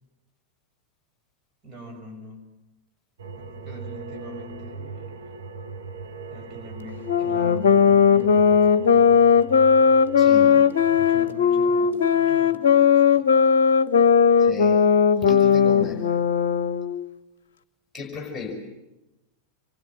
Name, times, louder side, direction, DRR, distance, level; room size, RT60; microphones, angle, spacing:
voice 1, 1.6-2.5 3.4-5.3 6.3-9.2 10.9-13.2, equal, 25° right, 1 dB, 6.7 m, -43 dB
sound 1, 3.2-11.3, right 4 dB, 65° right, 2.0 m, -39 dB
sound 2, 7.0-17.1, left 7 dB, 60° left, 0.8 m, -18 dB
voice 2, 10.2-10.6 14.4-14.8 15.2-16.1 17.9-18.7, left 4 dB, 15° left, 1 dB, 5.7 m, -34 dB
28.5 x 24.0 x 7.6 m, 0.98 s
figure-of-eight pair, 90°, 0 cm